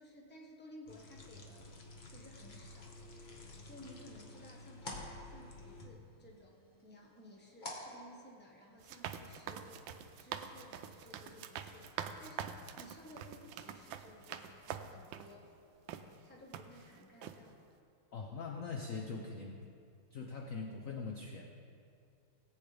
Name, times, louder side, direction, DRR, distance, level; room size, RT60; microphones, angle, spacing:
voice 1, 0.0-1.7 2.0-3.2 3.6-9.9 10.2-15.6 16.2-17.6, left 1 dB, 5° left, -2 dB, 0.9 m, -57 dB
sound 1, 0.9-5.9, left 2 dB, 40° left, 1.0 m, -52 dB
sound 2, 3.4-8.8, left 1 dB, 25° left, 1.4 m, -51 dB
sound 3, 8.8-15.3 15.9-16.0 16.5-16.9 17.2-17.4, right 8 dB, 75° right, 1.2 m, -45 dB
voice 2, 18.1-19.7 20.1-21.5, left 4 dB, 70° left, 2 dB, 0.7 m, -42 dB
18.0 x 8.6 x 3.4 m, 2.5 s
omnidirectional pair, 2.3 m